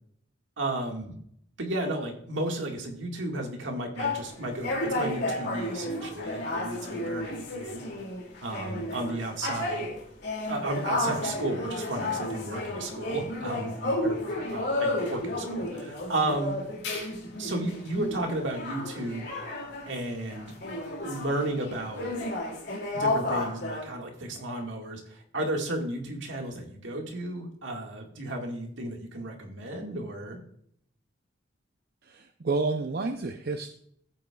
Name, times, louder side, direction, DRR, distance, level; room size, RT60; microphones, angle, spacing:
voice 1, 0.6-1.1 1.6-7.8 8.4-9.9 10.5-16.6 17.4-19.3 19.9-20.5 21.1-22.1 22.9-30.4, right 1 dB, 75° right, 2 dB, 1.9 m, -33 dB
sound 1, 4.0-20.0 20.2-23.8, left 1 dB, 60° left, 2.6 m, -32 dB
voice 2, 32.0-33.7, right 3 dB, 55° right, 5 dB, 0.6 m, -30 dB
14.0 x 8.6 x 2.4 m, 0.66 s
head